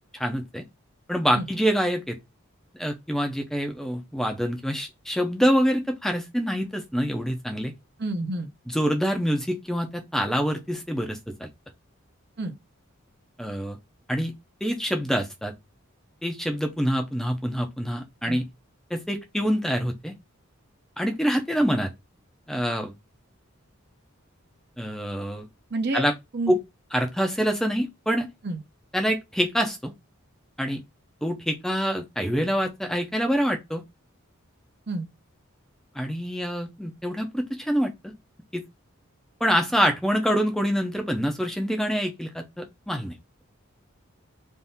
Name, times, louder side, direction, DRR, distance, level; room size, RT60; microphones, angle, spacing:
voice 1, 0.1-0.6 1.1-2.2 2.7-7.7 8.7-11.5 13.4-13.8 14.1-14.3 14.6-15.5 16.2-18.5 18.9-20.1 21.0-21.9 22.5-22.9 24.8-25.5 25.9-26.1 26.5-26.6 26.9-28.3 28.9-29.9 30.6-30.8 31.2-33.8 35.9-38.1 38.5-38.6 39.4-43.1, equal, ahead, 0.6 m, -26 dB
voice 2, 8.0-8.5 12.4-12.5 18.2-18.4 25.7-26.0 26.3-26.5 28.4-28.6 34.9-35.1, right 2 dB, 50° right, 0.8 m, -29 dB
3.5 x 2.7 x 4.1 m
head